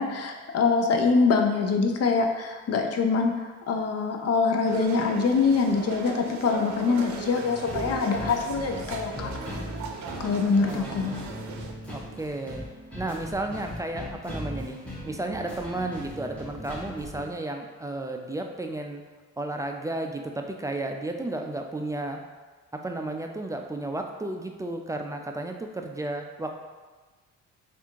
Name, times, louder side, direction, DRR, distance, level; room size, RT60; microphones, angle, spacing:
voice 1, 0.0-9.3 10.2-11.2, left 4 dB, 55° left, 4 dB, 0.6 m, -24 dB
sound 1, 4.6-11.7, right 5 dB, 70° right, 0.6 m, -38 dB
sound 2, 7.7-17.2, left 1 dB, 5° left, 1.4 m, -39 dB
voice 2, 10.6-11.3 11.9-12.7 12.9-14.8 15.0-19.0 19.4-22.2 22.7-26.5, right 2 dB, 10° right, 3 dB, 0.3 m, -33 dB
3.4 x 2.5 x 4.5 m, 1.3 s
cardioid pair, 90°, 30 cm